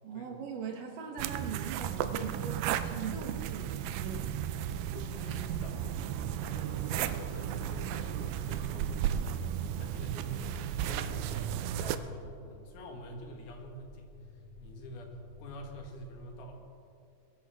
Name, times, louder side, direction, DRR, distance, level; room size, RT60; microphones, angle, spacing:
voice 1, 0.0-4.4, right 6 dB, 65° right, 2 dB, 2.5 m, -40 dB
sound 1, 1.2-12.0, right 10 dB, 90° right, 2.0 m, -34 dB
sound 2, 2.8-16.5, equal, 40° left, 4.8 m, -51 dB
voice 2, 4.8-6.2 6.5-9.3 9.6-14.1 14.6-16.6, equal, 70° left, 2 dB, 3.3 m, -46 dB
21.5 x 13.0 x 3.5 m, 2.5 s
omnidirectional pair, 4.7 m